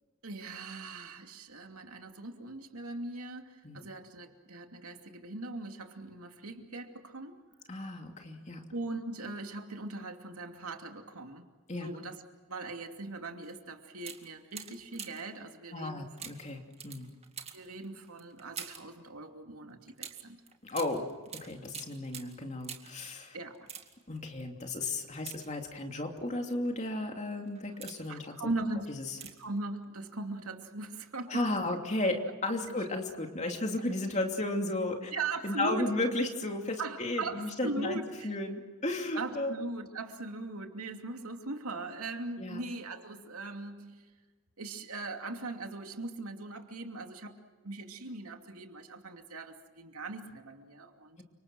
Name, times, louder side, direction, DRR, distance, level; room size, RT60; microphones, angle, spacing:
voice 1, 0.2-7.3 8.7-12.2 12.5-16.1 17.5-20.4 23.3-23.7 28.1-28.9 29.2-31.8 35.1-36.0 36.8-38.3 39.1-44.1 44.6-51.2, right 2 dB, 85° right, 4 dB, 2.7 m, -40 dB
voice 2, 7.7-8.6 11.7-11.9 15.7-17.1 20.6-21.1 21.4-23.4 24.1-28.3 29.0-29.2 31.3-35.1 35.4-39.5 42.4-42.6, left 2 dB, 30° left, 3 dB, 2.9 m, -34 dB
sound 1, 13.4-13.6 14.0-15.4 16.2-19.0 20.0-23.0 23.5-24.2 25.1-26.0 26.6-26.9 27.4-28.2 29.1-29.6 29.8-29.9, right 7 dB, 30° right, 2.1 m, -46 dB
29.5 x 26.5 x 6.2 m, 1.4 s
head